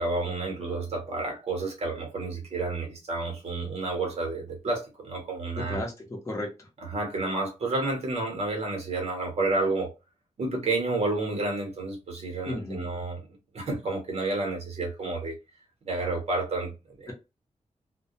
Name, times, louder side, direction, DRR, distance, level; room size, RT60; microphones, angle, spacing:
voice 1, 0.0-5.8 6.8-9.9 10.4-13.2 13.5-15.4 15.8-17.1, right 2 dB, 55° right, 1.0 m, -30 dB
voice 2, 5.6-6.7 12.5-12.9, left 1 dB, 25° left, 0.7 m, -34 dB
2.2 x 2.2 x 2.7 m
wide cardioid pair, 175°, 13 cm